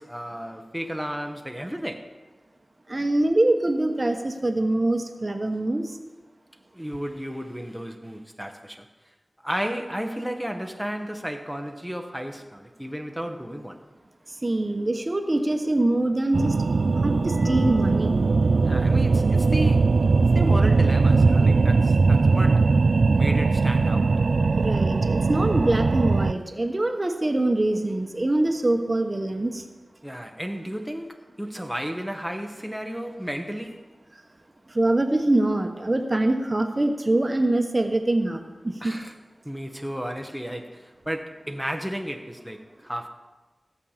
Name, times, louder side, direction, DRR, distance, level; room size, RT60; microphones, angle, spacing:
voice 1, 0.0-2.2 6.7-8.9 9.4-13.8 18.6-20.0 20.3-22.7 23.2-24.2 30.0-33.9 38.8-39.1 39.4-43.1, equal, ahead, 1.0 m, -33 dB
voice 2, 2.9-6.0 14.3-16.6 17.0-18.3 24.6-29.6 34.7-39.0, right 1 dB, 30° right, 1.1 m, -24 dB
sound 1, 16.3-26.3, right 4 dB, 75° right, 0.3 m, -20 dB
sound 2, 17.3-22.7, equal, 75° left, 2.6 m, -39 dB
15.5 x 5.5 x 7.3 m
wide cardioid pair, 60°, 0 cm